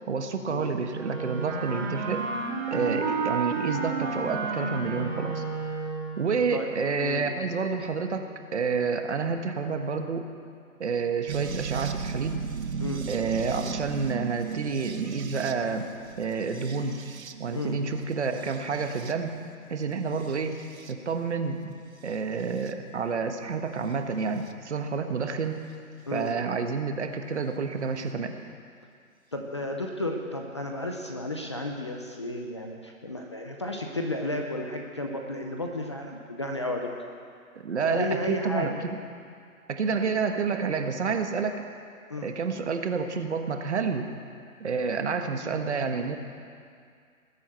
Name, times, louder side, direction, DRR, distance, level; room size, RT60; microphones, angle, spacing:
voice 1, 0.1-2.3 2.7-5.4 6.2-10.3 10.8-12.4 13.1-15.9 16.2-17.0 17.4-19.4 19.7-20.6 20.9-21.7 22.0-25.6 26.1-28.3 37.6-39.0 39.7-41.6 42.2-44.1 44.6-46.2, right 5 dB, 50° right, 6 dB, 1.4 m, -29 dB
Wind instrument woodwind instrument, 0.9-6.3, right 4 dB, 30° right, 2.8 m, -31 dB
sound 1, 11.3-19.4 20.1-20.9 22.1-22.7 24.5-24.6 26.3-26.4, right 6 dB, 75° right, 1.1 m, -36 dB
voice 2, 29.3-36.9 37.8-38.8 42.1-42.4, left 1 dB, 20° left, 2 dB, 0.6 m, -32 dB
20.5 x 8.4 x 7.7 m, 2.3 s
hypercardioid pair, 160°, 42 cm